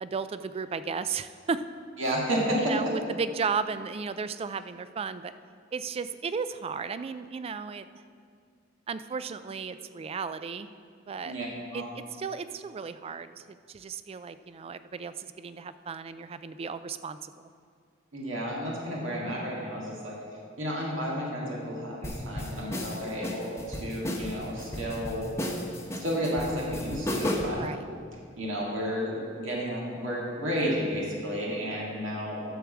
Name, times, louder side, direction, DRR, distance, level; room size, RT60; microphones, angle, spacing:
voice 1, 0.0-1.6 2.6-5.3 5.7-7.9 8.9-10.7 11.1-11.4 11.7-13.3 13.7-17.3 27.6-27.8, right 5 dB, 30° right, 13 dB, 0.3 m, -34 dB
voice 2, 2.0-2.8 11.2-11.5 11.7-11.9 18.1-20.2 20.6-25.4 26.0-27.6 28.4-32.6, equal, 75° right, -3 dB, 1.9 m, -31 dB
sound 1, 22.0-27.6, left 1 dB, 15° left, 0.9 m, -33 dB
11.5 x 4.8 x 7.1 m, 2.2 s
head